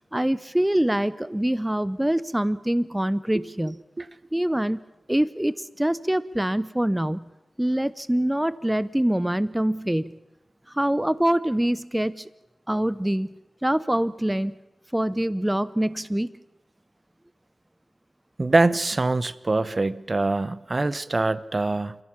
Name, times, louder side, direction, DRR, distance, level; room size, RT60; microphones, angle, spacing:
voice 1, 0.1-3.8 4.3-4.8 5.1-7.3 7.6-10.1 10.7-12.3 12.7-13.3 13.6-14.5 14.9-16.3, right 1 dB, 10° right, 18 dB, 0.7 m, -24 dB
voice 2, 18.4-22.0, right 2 dB, 45° right, 18 dB, 0.9 m, -24 dB
29.5 x 16.0 x 7.2 m, 1.0 s
cardioid pair, 40°, 0 cm